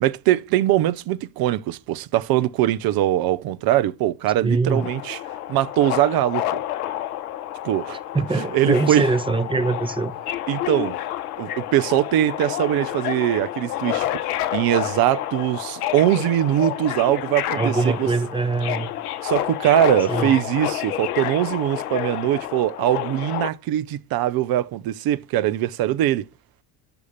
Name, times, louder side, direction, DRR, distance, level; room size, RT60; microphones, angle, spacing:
voice 1, 0.0-5.2 5.5-6.6 7.6-8.0 8.4-9.1 10.5-11.0 11.4-18.1 19.2-26.3, right 13 dB, 55° right, 0.7 m, -22 dB
voice 2, 4.4-4.9 8.1-10.1 17.5-18.9 20.1-20.4, right 3 dB, 10° right, 1.0 m, -23 dB
Subway metro underground, 4.7-23.5, left 13 dB, 85° left, 0.7 m, -29 dB
6.9 x 6.4 x 5.5 m
hypercardioid pair, 60°, 44 cm